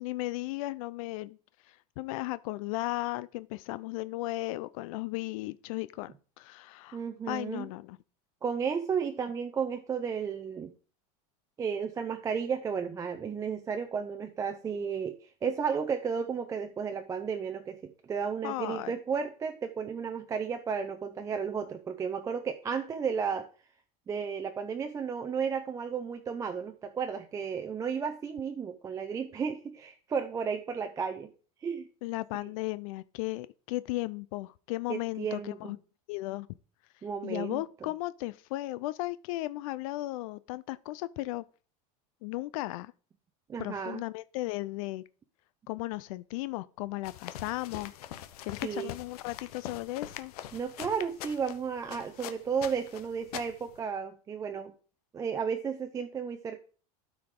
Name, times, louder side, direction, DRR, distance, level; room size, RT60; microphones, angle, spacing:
voice 1, 0.0-1.4 1.6-7.0 7.3-8.0 18.4-18.9 32.0-35.8 36.1-36.5 37.2-41.4 42.2-42.9 43.6-45.0 45.7-47.9 48.4-50.3, left 19 dB, 65° left, 0.4 m, -35 dB
voice 2, 6.9-7.7 8.4-10.7 11.6-23.5 24.1-31.3 31.6-31.9 34.9-35.7 37.0-37.6 43.5-44.0 48.6-48.9 50.5-54.7 55.1-56.6, right 6 dB, 15° right, 0.5 m, -33 dB
sound 1, 47.0-53.8, left 12 dB, 85° left, 0.8 m, -43 dB
12.5 x 4.8 x 3.7 m
supercardioid pair, 150°, 19 cm